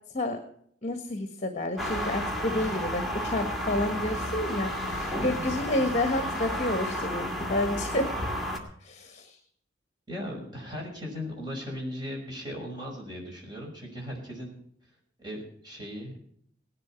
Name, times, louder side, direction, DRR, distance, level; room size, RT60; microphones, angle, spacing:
voice 1, 0.8-8.1 8.8-9.4, left 1 dB, 40° left, 6 dB, 1.6 m, -30 dB
sound 1, 1.8-8.6, equal, ahead, 2.4 m, -32 dB
voice 2, 5.3-5.7 10.1-14.6 15.2-16.2, equal, 25° right, -1 dB, 5.9 m, -38 dB
18.0 x 12.0 x 4.5 m, 0.65 s
head